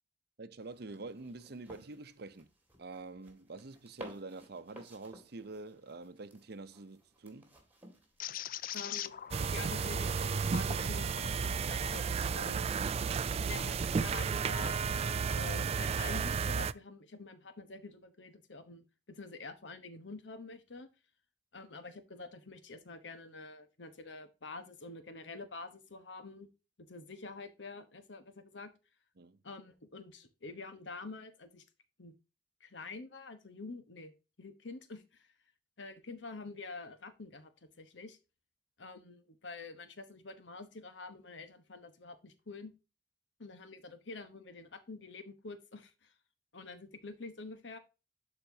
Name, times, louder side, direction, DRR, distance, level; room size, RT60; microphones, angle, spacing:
voice 1, 0.4-2.5 2.8-7.5 29.2-29.4, right 3 dB, 60° right, 0.7 m, -46 dB
sound 1, 0.6-11.9, equal, 10° right, 2.0 m, -57 dB
sound 2, 8.2-13.8 14.3-15.5, left 10 dB, 50° left, 0.4 m, -45 dB
voice 2, 8.7-11.1 11.7-12.7 13.4-20.9 21.5-26.5 26.8-28.7 29.4-31.6 32.0-32.1 32.6-34.1 34.4-35.3 35.8-37.5 37.8-38.2 38.8-42.7 43.4-46.1 46.5-47.8, left 3 dB, 80° left, 1.1 m, -47 dB
sound 3, 9.3-16.7, right 6 dB, 35° right, 0.3 m, -33 dB
11.5 x 4.4 x 2.8 m
head